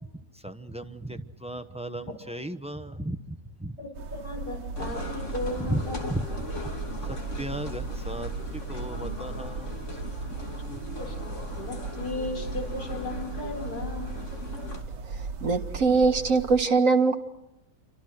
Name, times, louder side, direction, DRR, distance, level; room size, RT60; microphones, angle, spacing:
voice 1, 0.4-3.2 3.6-3.7 5.7-5.8 6.1-6.3 7.1-8.3 8.7-9.8, right 1 dB, 5° right, 8 dB, 0.7 m, -35 dB
voice 2, 3.8-6.2 11.0-14.2, left 2 dB, 70° left, 3 dB, 5.0 m, -36 dB
sound 1, 3.9-16.6, right 4 dB, 80° right, 1.8 m, -37 dB
sound 2, 4.8-14.8, left 1 dB, 45° left, 3.2 m, -38 dB
voice 3, 15.0-17.2, right 4 dB, 50° right, 4 dB, 2.2 m, -22 dB
28.0 x 25.0 x 6.3 m, 0.96 s
omnidirectional pair, 1.8 m